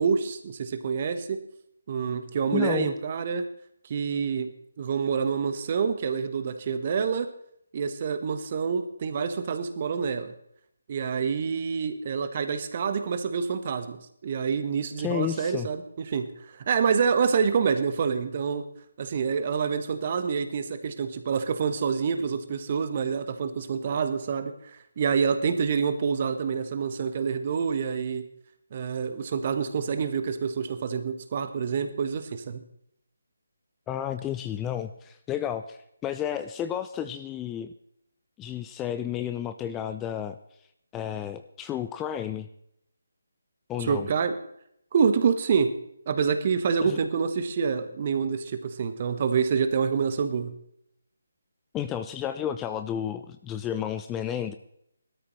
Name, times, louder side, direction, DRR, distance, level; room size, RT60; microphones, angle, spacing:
voice 1, 0.0-1.4 1.9-3.5 3.8-4.5 4.8-7.3 7.7-10.3 10.9-15.8 16.1-18.6 19.0-28.2 28.7-32.6 43.8-44.3 44.9-45.7 46.1-50.6, right 6 dB, 40° right, 9 dB, 1.3 m, -27 dB
voice 2, 2.5-2.9 15.0-15.7 33.9-37.7 38.4-40.4 40.9-42.5 43.7-44.1 46.8-47.0 51.7-54.5, left 10 dB, 15° left, 9 dB, 0.4 m, -32 dB
19.5 x 13.0 x 3.2 m, 0.73 s
figure-of-eight pair, 150°, 0 cm